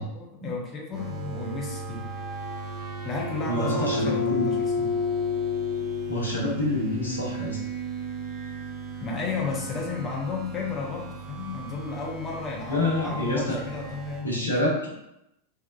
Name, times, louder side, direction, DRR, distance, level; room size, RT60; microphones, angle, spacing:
voice 1, 0.1-2.1 3.0-4.9 9.0-14.6, left 4 dB, 25° left, -2 dB, 0.5 m, -33 dB
sound 1, 0.9-14.2, left 2 dB, 20° right, 0.8 m, -33 dB
voice 2, 3.5-4.4 6.1-7.6 12.7-13.6 14.2-14.9, left 1 dB, 75° left, -4 dB, 0.9 m, -27 dB
3.5 x 2.2 x 2.3 m, 0.84 s
figure-of-eight pair, 90°, 0 cm